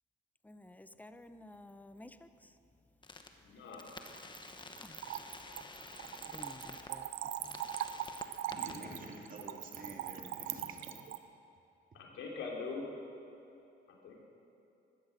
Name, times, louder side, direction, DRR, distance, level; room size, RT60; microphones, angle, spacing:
voice 1, 0.4-2.3 4.8-5.0 6.3-7.1 7.4-7.6, left 1 dB, 10° left, 0.7 m, -52 dB
sound 1, 3.0-3.3 3.7-6.9 7.3-8.7, left 3 dB, 25° left, 1.2 m, -50 dB
voice 2, 3.4-3.9 11.9-12.8 14.0-14.2, left 4 dB, 80° left, 3.2 m, -42 dB
Splash splatter / Trickle dribble, 3.8-11.2, right 11 dB, 90° right, 0.6 m, -41 dB
voice 3, 8.4-10.9, right 2 dB, 45° right, 2.5 m, -48 dB
15.5 x 12.0 x 6.6 m
cardioid pair, 90°, 20 cm